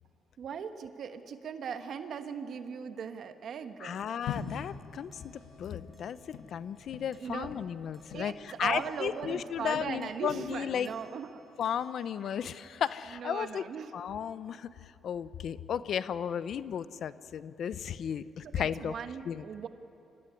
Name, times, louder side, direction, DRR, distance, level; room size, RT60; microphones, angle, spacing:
voice 1, 0.4-4.0 7.2-7.5 8.1-11.4 13.1-13.9 18.5-19.7, right 7 dB, 60° right, 8 dB, 1.3 m, -38 dB
voice 2, 3.8-6.2 6.5-10.9 11.6-13.6 13.9-18.9 19.2-19.4, left 8 dB, 65° left, 15 dB, 0.7 m, -34 dB
sound 1, 3.9-10.6 10.8-13.7, left 2 dB, 10° right, 5.0 m, -64 dB
sound 2, 4.3-9.0 9.2-10.5, left 7 dB, 85° left, 1.6 m, -43 dB
26.0 x 14.5 x 10.0 m, 2.8 s
cardioid pair, 90°, 0 cm